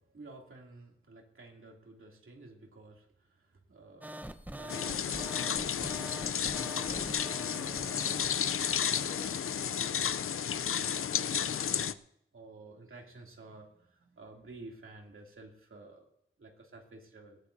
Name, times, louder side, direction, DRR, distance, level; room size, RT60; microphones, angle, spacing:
voice 1, 0.0-8.0 8.4-10.1 10.7-12.0 12.3-16.1 16.4-17.4, right 2 dB, 75° right, 1 dB, 2.6 m, -52 dB
sound 1, 4.0-9.0, right 1 dB, 10° right, 0.8 m, -44 dB
sound 2, 4.7-11.9, left 8 dB, 85° left, 0.5 m, -32 dB
20.5 x 14.5 x 2.6 m, 0.75 s
wide cardioid pair, 70°, 21 cm